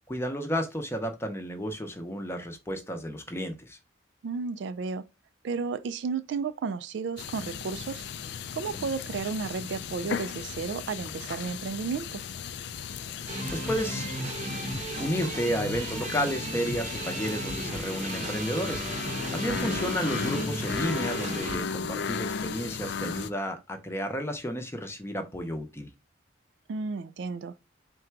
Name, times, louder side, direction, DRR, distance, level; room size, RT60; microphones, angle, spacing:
voice 1, 0.1-3.8 8.8-8.9 13.5-14.1 15.0-18.8 19.3-25.9, equal, 10° left, 0.6 m, -32 dB
voice 2, 4.2-5.0 5.4-8.0 8.5-12.2 19.5-19.9 26.7-27.5, right 5 dB, 60° right, 0.3 m, -33 dB
sound 1, 7.2-23.3, left 6 dB, 55° left, 0.3 m, -36 dB
sound 2, 13.3-21.6, right 2 dB, 35° right, 0.7 m, -35 dB
3.7 x 2.2 x 4.4 m
head